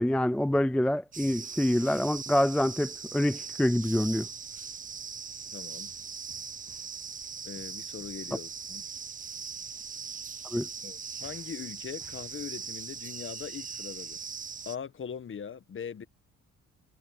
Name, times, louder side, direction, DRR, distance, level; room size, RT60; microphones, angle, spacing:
voice 1, 0.0-4.3 10.5-10.7, left 1 dB, 5° left, 0.3 m, -26 dB
sound 1, 1.1-14.8, right 6 dB, 25° right, 0.7 m, -40 dB
voice 2, 5.5-5.9 7.4-8.9 10.8-14.3 14.6-16.0, left 7 dB, 45° left, 1.3 m, -41 dB
cardioid pair, 90°, 30 cm